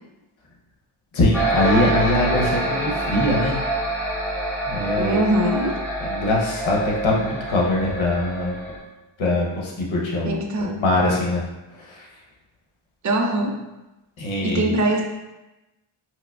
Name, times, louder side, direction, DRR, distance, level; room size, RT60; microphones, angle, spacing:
voice 1, 1.1-3.6 4.7-5.2 6.0-8.6 9.2-11.4 11.7-12.1 14.2-14.7, left 1 dB, 65° left, -2 dB, 0.9 m, -22 dB
sound 1, 1.3-8.8, right 1 dB, 5° left, 0.8 m, -26 dB
voice 2, 5.0-5.8 10.2-10.8 13.0-13.6 14.4-15.0, right 1 dB, 40° right, 2 dB, 0.4 m, -22 dB
4.5 x 2.1 x 2.2 m, 1.0 s
wide cardioid pair, 140°, 50 cm